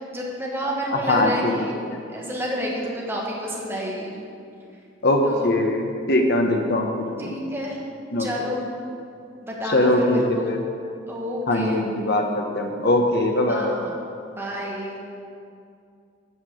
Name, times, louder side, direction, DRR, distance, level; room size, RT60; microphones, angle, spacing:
voice 1, 0.1-1.8 2.1-4.1 5.2-5.5 7.2-7.8 8.2-8.6 9.4-10.5 11.1-11.8 13.5-13.9 14.3-15.0, equal, 10° right, -3 dB, 1.5 m, -30 dB
voice 2, 0.9-1.5 5.0-6.9 7.2-7.4 8.1-8.3 9.7-10.6 11.5-13.7, left 1 dB, 55° left, 3 dB, 1.0 m, -21 dB
8.0 x 5.9 x 7.7 m, 2.4 s
head